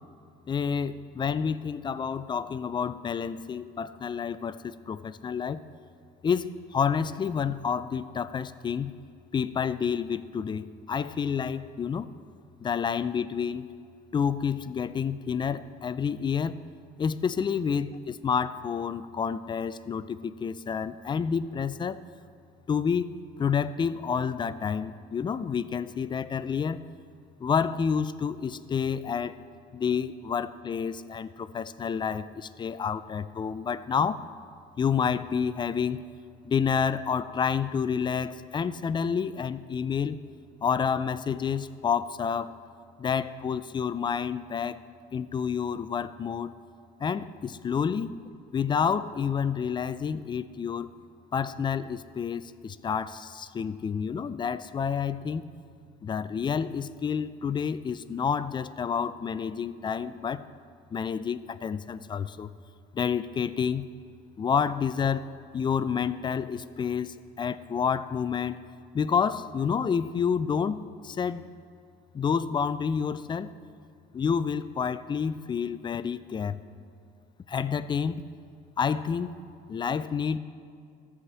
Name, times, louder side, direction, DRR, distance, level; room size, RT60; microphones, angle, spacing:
voice 1, 0.5-5.6 6.2-8.9 9.3-12.1 12.6-13.7 14.1-16.6 17.0-22.0 22.7-23.1 23.4-26.8 27.4-29.4 29.7-34.2 34.8-36.0 36.4-40.2 40.6-42.5 43.0-44.8 45.1-46.5 47.0-48.2 48.5-50.9 51.3-55.5 56.0-60.4 60.9-62.5 62.9-63.9 64.4-65.3 65.5-68.6 68.9-71.5 72.1-73.5 74.1-76.6 77.5-78.2 78.8-79.3 79.7-80.4, left 6 dB, 25° left, 15 dB, 0.4 m, -29 dB
13.5 x 5.0 x 7.4 m, 2.3 s
cardioid pair, 110°, 17 cm